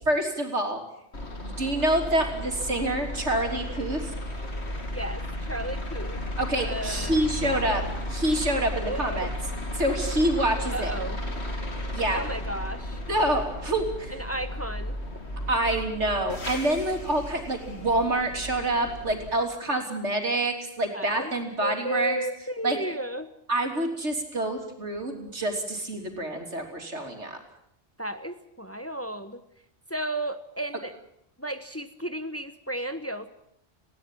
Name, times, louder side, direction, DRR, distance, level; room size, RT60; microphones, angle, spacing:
voice 1, 0.1-0.8 1.4-4.1 6.4-7.8 8.1-9.3 9.8-10.9 11.9-12.2 13.1-14.2 15.5-22.2 22.6-22.8 23.5-27.4, right 1 dB, 90° right, 4 dB, 3.7 m, -27 dB
sound 1, 1.1-19.3, left 1 dB, 70° left, 3.1 m, -34 dB
voice 2, 4.9-6.2 6.6-7.7 8.8-9.3 10.7-11.2 12.1-13.0 14.1-15.0 20.9-21.3 21.6-23.3 28.0-29.4 29.9-30.9 31.4-33.3, right 1 dB, 15° left, 10 dB, 1.1 m, -34 dB
19.5 x 17.0 x 9.1 m, 0.73 s
omnidirectional pair, 1.2 m